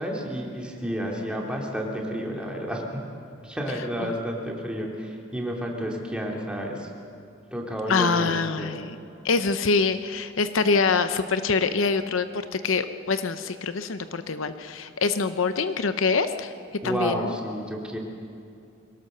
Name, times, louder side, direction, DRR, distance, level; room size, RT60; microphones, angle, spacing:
voice 1, 0.0-3.1 3.4-6.9 7.5-8.8 16.8-18.0, equal, 5° right, -1 dB, 2.6 m, -31 dB
voice 2, 7.9-9.0 9.2-16.5 16.8-17.3, left 4 dB, 70° left, 10 dB, 0.7 m, -25 dB
23.0 x 18.0 x 6.7 m, 2.5 s
head